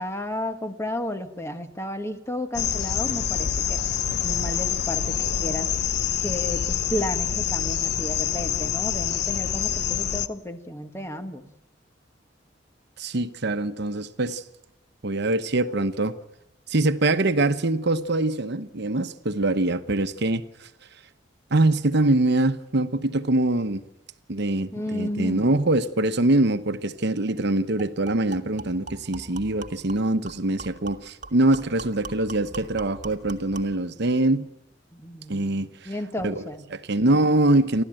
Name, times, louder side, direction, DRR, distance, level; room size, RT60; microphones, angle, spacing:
voice 1, 0.0-3.8 4.2-5.7 6.2-11.4 24.7-25.5 34.9-35.5 35.8-36.7, left 1 dB, 15° left, 1.6 m, -32 dB
sound 1, 2.5-10.3, left 9 dB, 60° left, 0.7 m, -26 dB
voice 2, 13.0-14.4 15.0-16.1 16.7-20.7 21.5-23.8 24.3-34.5 35.3-35.9 36.2-36.4 36.7-37.8, right 2 dB, 65° right, 1.0 m, -23 dB
sound 2, 26.9-27.0 27.3-27.4 27.8-33.8, right 3 dB, 45° right, 1.4 m, -42 dB
29.5 x 12.5 x 9.0 m
head